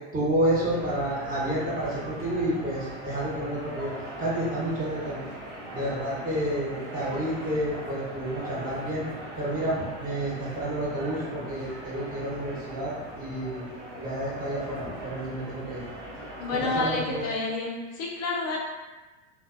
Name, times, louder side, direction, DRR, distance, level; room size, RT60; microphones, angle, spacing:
voice 1, 0.1-3.9 4.2-5.2 5.7-9.1 9.4-13.6 14.0-15.8 16.5-17.2, right 1 dB, 25° right, -7 dB, 1.0 m, -30 dB
sound 1, 0.7-16.8, right 1 dB, 70° right, 1.0 m, -40 dB
voice 2, 16.4-18.6, left 3 dB, 45° left, -2 dB, 0.5 m, -29 dB
2.5 x 2.2 x 2.5 m, 1.2 s
supercardioid pair, 110°, 35 cm